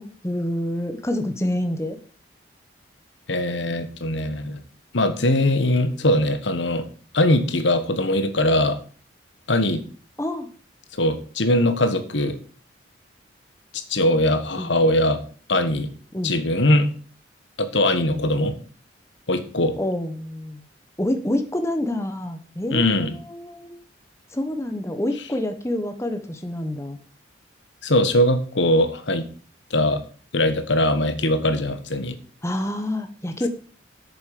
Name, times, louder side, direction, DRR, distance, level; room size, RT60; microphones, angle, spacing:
voice 1, 0.0-2.0 10.2-10.5 14.6-14.7 16.1-16.3 18.1-18.2 19.8-20.6 21.0-23.7 24.3-27.0 32.4-33.5, left 1 dB, 15° left, 7 dB, 1.1 m, -27 dB
voice 2, 3.3-4.6 4.9-6.9 7.1-8.8 9.5-9.8 11.0-12.4 13.7-15.2 15.5-15.9 16.2-16.9 17.6-18.5 19.3-19.8 22.7-23.1 27.8-29.3 29.7-30.0 30.3-32.2, left 1 dB, 75° left, 9 dB, 1.4 m, -21 dB
8.6 x 7.1 x 6.7 m, 0.41 s
head